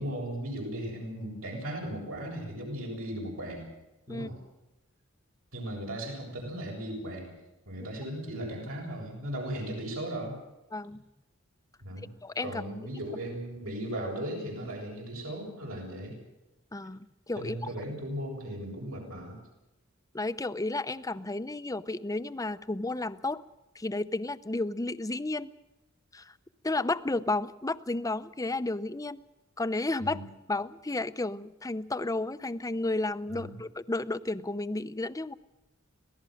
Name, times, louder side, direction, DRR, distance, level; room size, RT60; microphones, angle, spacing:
voice 1, 0.0-3.7 4.1-4.4 5.5-7.4 7.7-10.3 11.8-12.1 12.4-16.2 17.4-19.4 30.0-30.2 33.3-33.6, right 1 dB, 80° right, 0 dB, 7.4 m, -37 dB
voice 2, 10.7-11.0 12.2-12.6 16.7-17.6 20.1-23.4 23.7-25.5 26.1-26.3 26.6-29.2 29.6-30.2 30.5-35.3, left 2 dB, 15° left, 13 dB, 0.7 m, -32 dB
26.0 x 18.0 x 6.5 m, 0.97 s
head